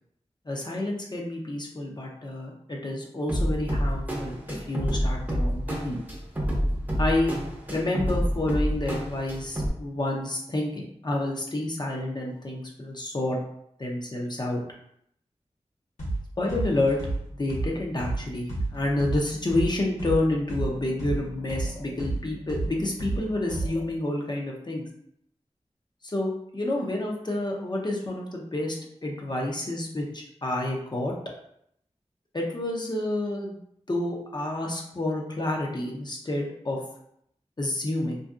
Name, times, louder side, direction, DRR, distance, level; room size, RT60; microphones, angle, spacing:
voice 1, 0.5-6.0 7.0-7.4 7.7-13.4 13.8-14.6 16.4-17.0 17.3-24.8 26.0-28.8 29.0-31.1 32.3-33.6 33.9-36.8 37.6-38.2, left 1 dB, 40° left, -1 dB, 0.6 m, -29 dB
sound 1, 3.3-9.7, equal, 15° right, 0.7 m, -28 dB
sound 2, 16.0-16.2 16.5-20.2 20.5-23.9, right 2 dB, 85° left, 1.2 m, -30 dB
2.6 x 2.6 x 2.3 m, 0.72 s
wide cardioid pair, 70°, 12 cm